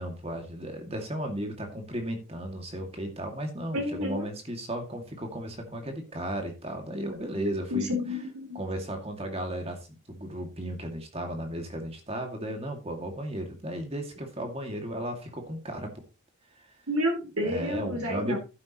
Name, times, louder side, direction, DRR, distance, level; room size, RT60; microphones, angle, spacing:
voice 1, 0.0-7.9 8.5-15.9 16.6-16.7 17.4-18.4, right 1 dB, 25° right, 4 dB, 2.3 m, -35 dB
voice 2, 3.7-4.3 7.7-8.6 16.9-18.4, left 1 dB, 90° right, 2 dB, 4.4 m, -30 dB
11.5 x 9.8 x 3.1 m, 0.30 s
head